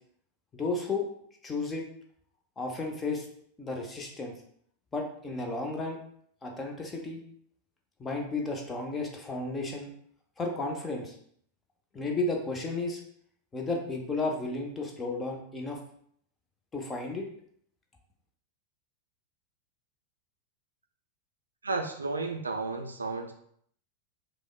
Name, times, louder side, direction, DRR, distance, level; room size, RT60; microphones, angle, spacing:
voice 1, 0.5-1.1 1.4-1.8 2.6-3.3 3.6-4.3 4.9-6.0 6.4-7.2 8.0-9.9 10.4-11.2 11.9-13.0 13.5-15.8 16.7-17.3, left 3 dB, 15° left, 1 dB, 0.6 m, -33 dB
voice 2, 21.6-23.3, right 3 dB, 75° right, 4 dB, 0.3 m, -32 dB
4.7 x 2.0 x 2.2 m, 0.66 s
figure-of-eight pair, 90°, 0 cm